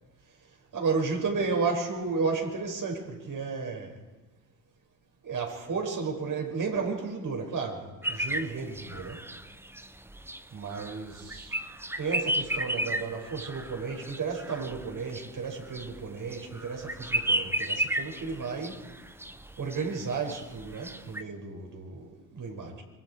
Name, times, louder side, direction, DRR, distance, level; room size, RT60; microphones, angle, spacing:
voice 1, 0.7-3.9 5.2-9.2 10.5-11.6 12.0-18.8 19.6-22.8, right 4 dB, 50° right, 2 dB, 6.6 m, -33 dB
sound 1, 8.0-21.2, right 1 dB, 5° right, 1.1 m, -34 dB
26.5 x 23.5 x 4.9 m, 1.2 s
hypercardioid pair, 60°, 42 cm